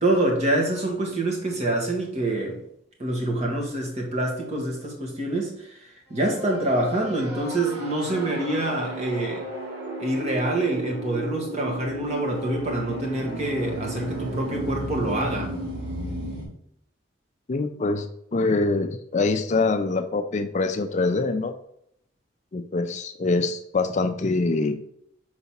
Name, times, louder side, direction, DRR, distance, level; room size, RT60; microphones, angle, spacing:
voice 1, 0.0-2.6 3.0-9.5 10.0-15.5, right 1 dB, 35° right, 0 dB, 1.6 m, -26 dB
sound 1, 6.1-16.4, right 1 dB, 65° right, 2.1 m, -34 dB
voice 2, 17.5-18.1 18.3-21.5 22.5-24.7, left 3 dB, 40° left, 8 dB, 0.4 m, -24 dB
4.8 x 4.1 x 5.8 m, 0.73 s
head